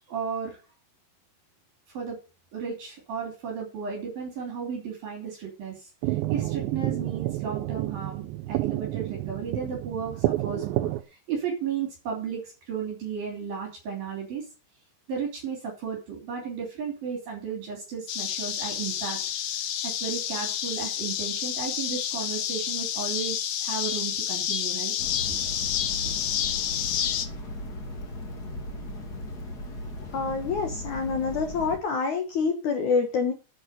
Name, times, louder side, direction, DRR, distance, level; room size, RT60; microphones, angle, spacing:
voice 1, 0.1-0.6 1.9-2.2 2.5-14.5 15.1-19.2 19.8-24.9 25.3-25.4, right 6 dB, 55° right, 0 dB, 4.4 m, -34 dB
sound 1, 6.0-11.0, right 16 dB, 80° right, 2.9 m, -29 dB
sound 2, 18.1-27.3, left 10 dB, 85° left, 1.8 m, -29 dB
sound 3, 25.0-31.8, left 1 dB, 50° left, 1.2 m, -37 dB
voice 2, 30.1-33.3, left 5 dB, 70° left, 5 dB, 1.8 m, -26 dB
9.5 x 8.3 x 6.6 m, 0.33 s
omnidirectional pair, 5.4 m